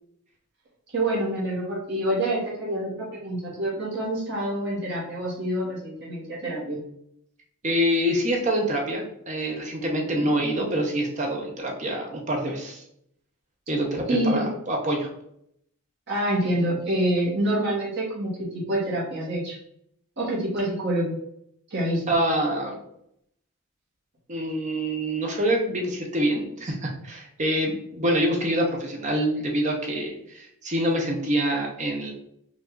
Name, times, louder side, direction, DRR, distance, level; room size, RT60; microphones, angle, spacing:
voice 1, 0.9-6.8 14.1-14.5 16.1-19.6 20.2-21.2 21.7-22.0, right 1 dB, 50° right, -7 dB, 1.5 m, -27 dB
voice 2, 7.6-12.8 13.7-15.1 22.1-22.8 24.3-32.1, equal, 35° right, 0 dB, 0.9 m, -26 dB
5.0 x 2.7 x 3.8 m, 0.72 s
head